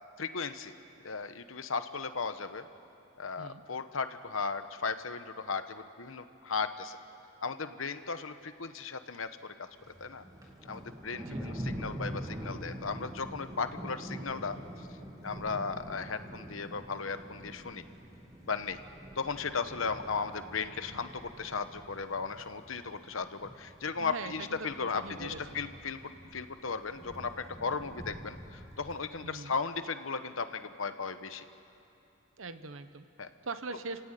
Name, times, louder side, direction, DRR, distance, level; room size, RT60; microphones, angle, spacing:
voice 1, 0.2-0.7 1.0-2.7 3.2-7.0 7.4-9.3 10.0-10.2 10.6-14.9 15.2-17.8 18.4-18.8 19.2-31.4 33.2-33.3, left 5 dB, 80° left, 10 dB, 1.1 m, -36 dB
Thunder, 9.7-28.9, equal, 15° right, 2.5 m, -45 dB
voice 2, 11.2-11.6 24.0-24.7 24.9-25.6 29.2-29.6 32.4-33.0 33.4-34.0, right 3 dB, 80° right, 11 dB, 1.1 m, -41 dB
30.0 x 16.5 x 9.2 m, 2.8 s
head